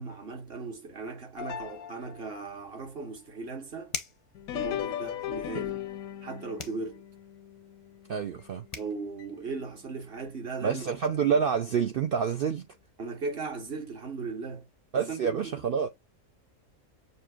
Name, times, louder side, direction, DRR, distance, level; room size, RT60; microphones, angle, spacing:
voice 1, 0.0-4.0 4.5-5.9 6.2-7.0 8.8-10.9 11.3-11.4 13.0-14.7 15.1-15.6, right 4 dB, 45° right, 1.0 m, -37 dB
sound 1, 1.4-2.5 4.3-8.8 9.2-9.3 10.1-10.2 11.0-11.1, left 11 dB, 80° left, 1.0 m, -38 dB
sound 2, 3.9-4.3 6.6-6.9 8.4-8.5 8.7-8.9, left 4 dB, 35° left, 0.5 m, -37 dB
voice 2, 8.1-8.7 10.6-12.7 14.9-15.9, right 7 dB, 70° right, 0.5 m, -27 dB
6.7 x 2.7 x 2.3 m
omnidirectional pair, 1.5 m